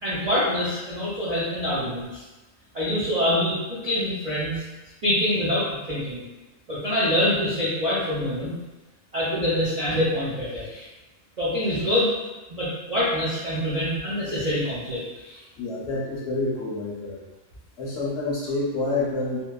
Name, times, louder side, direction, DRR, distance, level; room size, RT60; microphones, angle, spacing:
voice 1, 0.0-2.2 2.7-4.7 5.0-6.2 6.7-8.5 9.1-10.9 11.4-12.1 12.5-15.4, left 1 dB, 60° right, -9 dB, 0.4 m, -25 dB
voice 2, 15.6-17.2 17.8-19.4, left 2 dB, 65° left, -5 dB, 0.8 m, -28 dB
2.8 x 2.1 x 2.2 m, 1.1 s
omnidirectional pair, 1.4 m